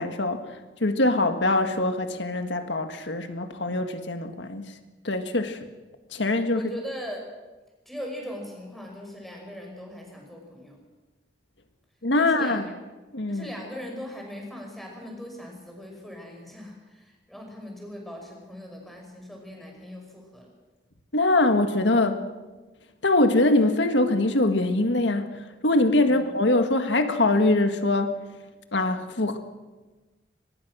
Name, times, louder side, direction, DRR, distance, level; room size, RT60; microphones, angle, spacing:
voice 1, 0.0-4.7 5.0-5.6 6.1-6.6 12.0-12.6 13.1-13.5 21.1-22.3 23.0-28.2 28.7-29.4, left 2 dB, 85° left, 7 dB, 1.8 m, -23 dB
voice 2, 6.5-7.3 7.9-10.8 12.2-12.7 13.3-20.5 26.0-26.2, equal, ahead, 1 dB, 5.8 m, -39 dB
25.0 x 20.5 x 6.3 m, 1.2 s
head